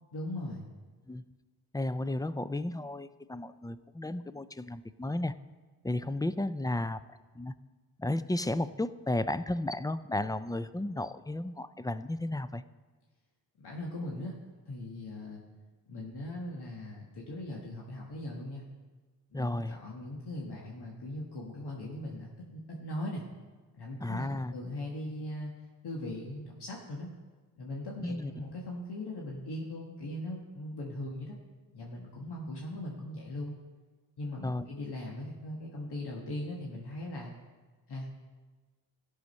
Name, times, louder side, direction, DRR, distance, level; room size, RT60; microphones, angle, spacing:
voice 1, 0.1-0.7 13.6-15.4 15.9-18.6 19.3-23.2 23.7-25.5 25.8-27.1 27.6-31.3 31.7-33.6 34.2-37.3 37.9-38.1, left 1 dB, 70° left, -2 dB, 1.5 m, -39 dB
voice 2, 1.7-5.3 5.8-7.0 7.3-7.5 8.0-12.6 19.3-19.8 24.0-24.5 28.0-28.3 34.4-34.6, left 1 dB, 10° left, 14 dB, 0.4 m, -33 dB
14.0 x 6.5 x 5.3 m, 1.4 s
cardioid pair, 65°, 40 cm